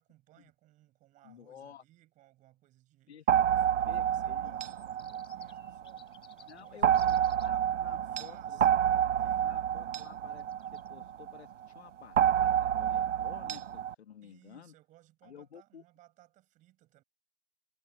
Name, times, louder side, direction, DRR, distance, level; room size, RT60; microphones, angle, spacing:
voice 1, 0.0-7.0 7.7-9.5 14.2-17.0, right 16 dB, 20° right, 5.9 m, -62 dB
voice 2, 1.2-1.8 3.1-3.3 3.9-4.5 6.4-8.6 9.4-10.5 10.7-14.7 15.2-15.8, left 8 dB, 60° left, 1.8 m, -52 dB
sound 1, 3.3-6.0 6.8-11.4 12.2-13.9, right 9 dB, 75° right, 0.6 m, -28 dB
sound 2, 4.6-7.5 10.4-10.9, left 10 dB, 15° left, 3.5 m, -59 dB
figure-of-eight pair, 135°, 37 cm